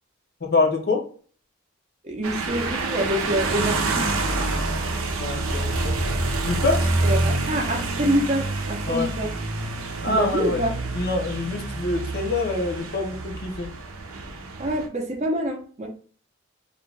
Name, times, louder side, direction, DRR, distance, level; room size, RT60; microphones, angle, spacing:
voice 1, 0.4-1.0 5.2-6.0 6.4-6.8 8.9-9.1 10.0-10.6 10.9-13.7, left 3 dB, 50° left, 2 dB, 0.6 m, -25 dB
voice 2, 2.0-4.1 7.0-9.3 10.1-10.8 14.6-15.9, equal, 30° right, 1 dB, 0.5 m, -26 dB
sound 1, 2.2-14.9, right 2 dB, 80° right, 0.5 m, -27 dB
2.5 x 2.2 x 3.2 m, 0.44 s
head